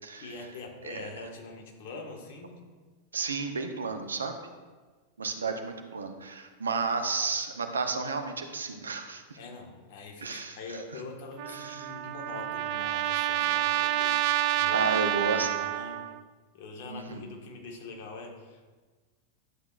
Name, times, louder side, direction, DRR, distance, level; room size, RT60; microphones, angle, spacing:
voice 1, 0.2-2.6 3.9-4.2 5.4-5.5 9.3-16.1 16.5-18.6, left 3 dB, 50° left, 1 dB, 1.6 m, -44 dB
voice 2, 3.1-4.4 5.2-9.2 10.2-10.6 11.5-11.9 14.7-15.5 16.9-17.3, right 4 dB, 70° right, 6 dB, 0.9 m, -32 dB
Trumpet, 11.4-16.2, right 13 dB, 45° right, 0.3 m, -28 dB
12.0 x 8.2 x 2.5 m, 1.4 s
figure-of-eight pair, 90°, 0 cm